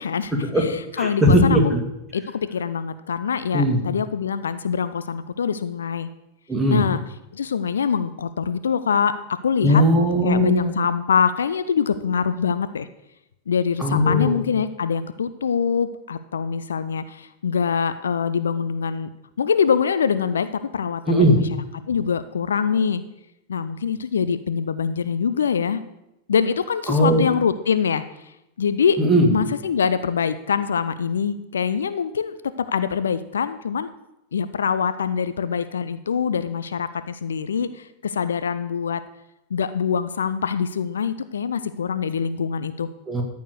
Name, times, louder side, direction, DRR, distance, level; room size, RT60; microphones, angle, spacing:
voice 1, 0.0-1.7 2.1-6.1 6.7-7.0 7.3-9.2 9.4-9.8 10.2-12.9 13.5-19.1 19.4-21.4 21.9-23.0 23.5-25.8 26.3-28.0 28.6-29.0 29.3-32.3 32.7-33.9 34.3-39.0 39.5-42.9, left 6 dB, 70° left, 13 dB, 0.4 m, -24 dB
voice 2, 1.0-1.8 3.5-3.8 6.5-6.8 9.6-10.7 13.8-14.4 21.1-21.4 26.9-27.2 29.0-29.3 43.1-43.2, equal, 10° right, 0 dB, 2.2 m, -18 dB
13.5 x 4.6 x 6.7 m, 0.88 s
figure-of-eight pair, 90°, 0 cm